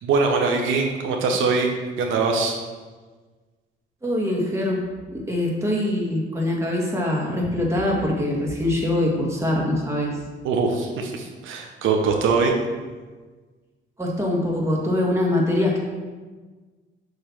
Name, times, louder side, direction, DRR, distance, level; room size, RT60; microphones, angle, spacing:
voice 1, 0.0-1.7 2.0-2.5 10.4-12.5, right 4 dB, 80° right, 2 dB, 0.8 m, -22 dB
voice 2, 4.0-4.8 5.1-10.1 14.0-15.8, left 1 dB, 15° right, -2 dB, 1.7 m, -23 dB
6.6 x 3.3 x 5.9 m, 1.4 s
cardioid pair, 90°, 20 cm